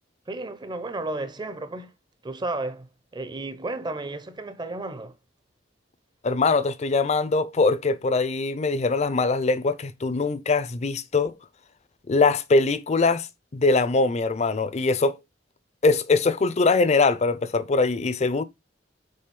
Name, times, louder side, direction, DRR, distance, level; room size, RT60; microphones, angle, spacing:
voice 1, 0.3-1.9 2.2-5.1, right 2 dB, 25° right, 0.7 m, -33 dB
voice 2, 6.2-11.3 12.1-13.3 13.5-15.2 15.8-18.4, left 3 dB, 40° left, 0.5 m, -22 dB
5.5 x 3.9 x 5.2 m
head